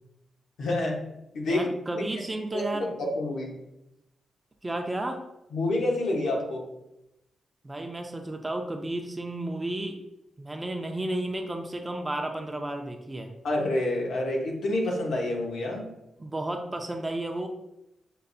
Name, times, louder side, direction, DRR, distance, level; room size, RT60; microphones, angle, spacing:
voice 1, 0.6-1.0 1.3-1.7 1.9-2.0 2.5-3.5 5.5-6.6 13.4-15.9, left 1 dB, 80° left, -1 dB, 1.0 m, -28 dB
voice 2, 1.5-2.9 4.6-5.2 7.6-10.0 10.4-13.3 16.2-17.5, right 1 dB, 15° right, 4 dB, 0.5 m, -32 dB
6.6 x 2.5 x 2.6 m, 0.87 s
wide cardioid pair, 120°, 0 cm